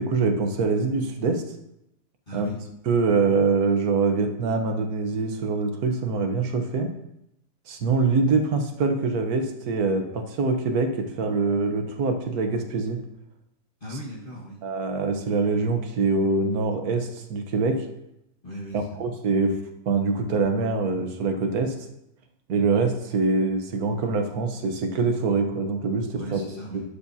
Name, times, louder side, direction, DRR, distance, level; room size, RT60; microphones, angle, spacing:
voice 1, 0.0-1.4 2.3-2.5 2.9-6.9 7.7-13.0 13.9-14.0 14.6-17.9 18.7-19.6 19.9-21.7 22.5-26.4 26.7-26.8, right 4 dB, 55° right, 5 dB, 1.4 m, -24 dB
voice 2, 2.3-2.6 13.8-14.6 18.4-19.0 26.1-26.8, equal, 30° left, -7 dB, 1.5 m, -38 dB
12.0 x 8.6 x 2.8 m, 0.83 s
omnidirectional pair, 2.0 m